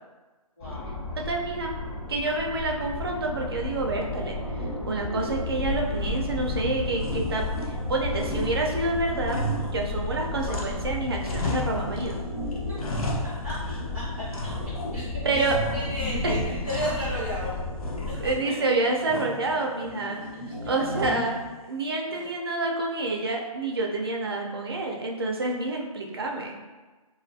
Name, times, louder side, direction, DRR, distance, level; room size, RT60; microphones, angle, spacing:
sound 1, 0.6-18.4, left 2 dB, 30° left, 1.0 m, -33 dB
voice 1, 0.6-0.9 13.4-14.2 14.9-15.4 15.7-17.5 18.0-18.2 18.4-18.5 20.1-20.2 20.4-20.6 22.1-22.3, equal, 10° left, -14 dB, 0.6 m, -34 dB
voice 2, 1.3-1.7 2.1-4.4 4.8-9.4 9.7-12.2 15.2-15.5 16.2-16.3 18.2-20.2 20.7-21.4 21.7-26.6, right 2 dB, 40° right, 0 dB, 0.4 m, -28 dB
sound 2, 3.0-21.5, left 1 dB, 55° left, 1.0 m, -40 dB
sound 3, 6.0-6.6 6.9-7.9 8.2-10.9 11.2-12.2 12.5-13.9 14.3-15.0 15.4-16.1 16.4-17.5 17.8-18.5 19.1-19.5 20.9-21.4, left 1 dB, 70° left, 0.6 m, -35 dB
2.6 x 2.4 x 2.6 m, 1.2 s
hypercardioid pair, 175°, 19 cm